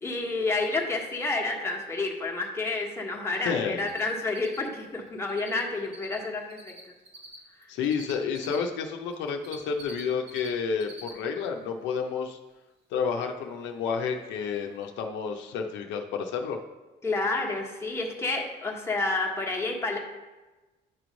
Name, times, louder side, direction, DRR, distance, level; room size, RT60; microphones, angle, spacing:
voice 1, 0.0-6.7 17.0-20.0, left 3 dB, 15° left, -1 dB, 1.1 m, -29 dB
voice 2, 3.4-3.9 7.7-12.4 12.9-16.6, left 6 dB, 85° left, 3 dB, 0.7 m, -30 dB
Cricket, 3.8-4.0 4.3-5.6 5.8-8.6 9.1-10.5 10.7-11.1 11.5-11.6 14.1-14.2 14.5-14.6 14.8-14.9, right 2 dB, 90° right, 1.4 m, -45 dB
9.2 x 3.1 x 5.2 m, 1.2 s
cardioid pair, 120°, 18 cm